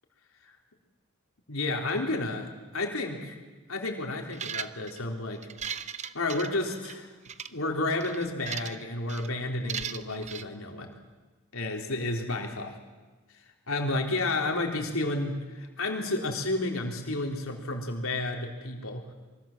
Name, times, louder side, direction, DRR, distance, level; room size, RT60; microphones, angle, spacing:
voice 1, 1.5-3.4 3.7-5.5 6.1-7.1 7.5-10.9 11.5-12.8 13.7-19.1, left 2 dB, 70° left, 2 dB, 3.8 m, -31 dB
sound 1, 4.3-5.0 5.4-6.9 7.3-7.5 8.0-8.8 9.1-9.3 9.7-10.4, right 8 dB, 35° right, 0.8 m, -37 dB
26.0 x 23.0 x 7.4 m, 1.3 s
head